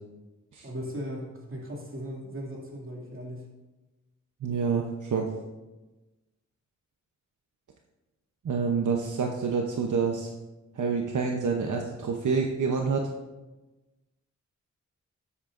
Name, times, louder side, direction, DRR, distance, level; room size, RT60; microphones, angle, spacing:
voice 1, 0.6-3.5, equal, 45° right, -3 dB, 2.6 m, -37 dB
voice 2, 4.4-5.3 8.4-10.3 10.7-13.1, right 5 dB, 75° right, 1 dB, 0.9 m, -27 dB
13.0 x 8.5 x 2.6 m, 1.1 s
wide cardioid pair, 115°, 30 cm